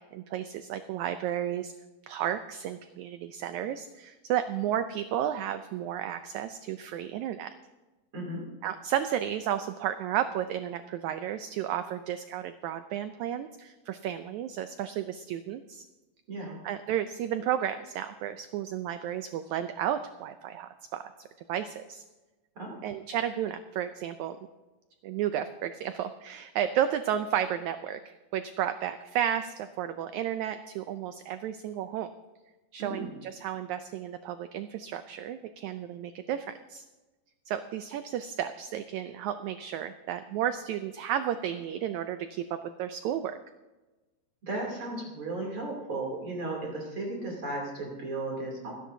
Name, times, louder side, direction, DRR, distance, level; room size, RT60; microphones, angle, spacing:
voice 1, 0.0-1.7 2.1-7.5 8.6-15.8 16.6-21.1 21.5-22.0 22.8-24.4 25.0-28.0 28.3-32.1 32.7-36.8 37.5-43.4, right 10 dB, 90° right, 10 dB, 1.6 m, -32 dB
voice 2, 8.1-8.5 16.3-16.6 22.6-22.8 32.8-33.1 44.4-48.7, right 2 dB, 40° right, -1 dB, 3.5 m, -35 dB
29.0 x 10.0 x 2.7 m, 1.2 s
omnidirectional pair, 4.0 m